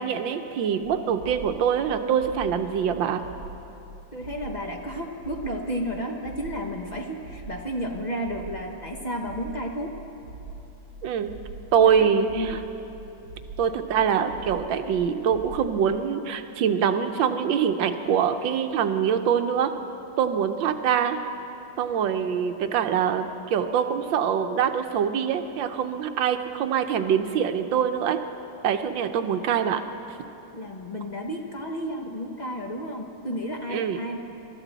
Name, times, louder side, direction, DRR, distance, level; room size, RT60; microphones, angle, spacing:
voice 1, 0.0-3.2 11.0-11.3 11.7-12.6 13.6-19.7 20.2-21.2 21.8-28.2 28.6-29.8 33.7-34.0, right 8 dB, 80° right, 8 dB, 1.5 m, -24 dB
sound 1, 0.8-15.7, right 2 dB, 65° right, 3.1 m, -43 dB
voice 2, 4.1-10.0 11.8-12.1 12.3-12.6 30.5-34.2, equal, 30° left, 1 dB, 0.9 m, -32 dB
26.5 x 13.0 x 4.0 m, 3.0 s
omnidirectional pair, 2.1 m